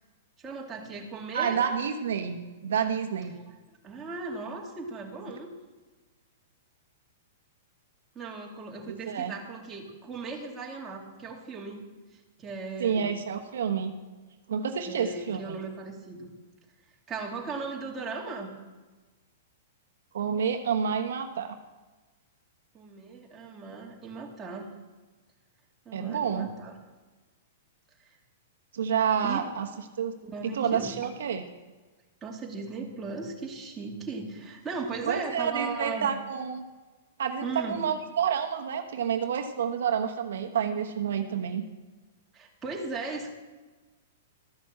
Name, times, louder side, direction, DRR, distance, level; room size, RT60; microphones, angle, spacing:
voice 1, 0.4-1.6 3.5-5.5 8.1-11.8 12.1-13.2 14.9-16.3 17.1-18.5 22.7-24.7 25.9-26.8 28.0-28.2 29.2-29.5 30.2-31.1 32.2-36.1 37.4-37.8 42.3-43.3, right 4 dB, 15° right, -1 dB, 2.3 m, -37 dB
voice 2, 1.3-3.3 8.9-9.3 12.8-13.9 14.5-15.5 20.1-21.6 25.9-26.5 28.7-29.7 30.0-30.2 30.5-31.4 35.1-36.6 37.2-41.7, right 7 dB, 80° right, 5 dB, 1.0 m, -29 dB
13.5 x 6.3 x 7.3 m, 1.3 s
hypercardioid pair, 145°, 0 cm